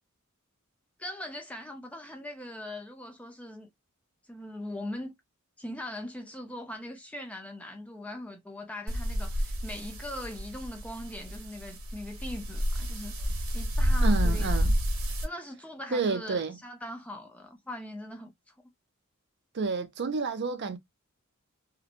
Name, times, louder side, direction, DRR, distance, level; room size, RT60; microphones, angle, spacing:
voice 1, 1.0-3.7 4.3-5.1 5.6-14.6 15.2-18.5, left 1 dB, 5° left, 0.5 m, -41 dB
sound 1, 8.9-15.2, equal, 80° right, 0.9 m, -29 dB
voice 2, 14.0-14.7 15.9-16.6 19.5-20.8, right 4 dB, 55° right, 0.5 m, -30 dB
2.9 x 2.1 x 2.4 m
head